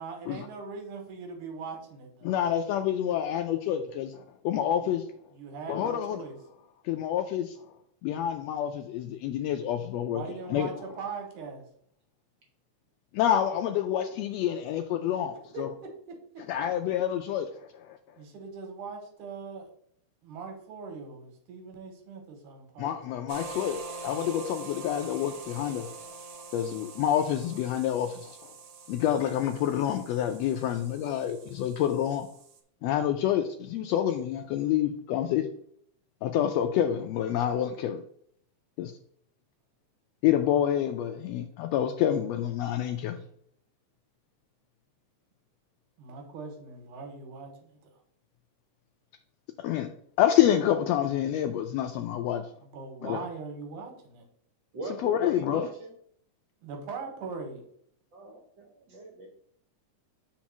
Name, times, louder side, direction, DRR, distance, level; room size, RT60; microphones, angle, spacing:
voice 1, 0.0-1.8 2.1-2.4 4.8-4.9 5.3-6.4 10.1-11.6 15.5-15.6 18.2-19.7 20.2-23.2 46.0-47.7 52.6-54.2 56.6-57.6, right 5 dB, 85° right, 3 dB, 2.7 m, -40 dB
voice 2, 2.2-5.0 5.7-6.2 6.8-7.6 8.0-10.7 13.1-15.7 16.5-18.0 22.8-25.9 26.5-28.5 28.9-32.3 32.8-35.5 36.2-38.0 38.8-38.9 40.2-43.2 49.6-49.9 50.2-52.4 53.0-53.2 55.0-55.7, left 10 dB, 85° left, 5 dB, 1.5 m, -28 dB
sound 1, 23.3-32.6, right 3 dB, 70° right, 1.5 m, -44 dB
voice 3, 54.7-55.9 58.1-59.3, right 3 dB, 50° right, 0 dB, 1.4 m, -42 dB
4.7 x 4.4 x 5.8 m, 0.64 s
omnidirectional pair, 3.5 m